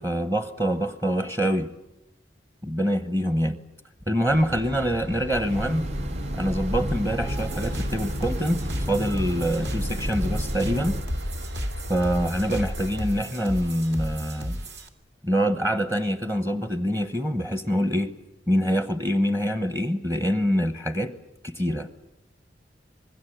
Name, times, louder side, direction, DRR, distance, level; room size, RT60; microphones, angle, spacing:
voice 1, 0.0-1.7 2.6-3.6 4.1-5.9 6.3-8.6 8.9-11.0 11.9-14.6 15.2-18.1 18.5-21.1 21.4-21.9, equal, 20° right, 9 dB, 1.0 m, -25 dB
Train / Engine, 4.3-13.0, equal, 90° right, 1.7 m, -35 dB
Train, 5.3-11.0, equal, 40° right, 0.9 m, -32 dB
sound 1, 7.3-14.9, equal, 70° right, 2.4 m, -34 dB
26.5 x 21.0 x 8.0 m, 0.88 s
head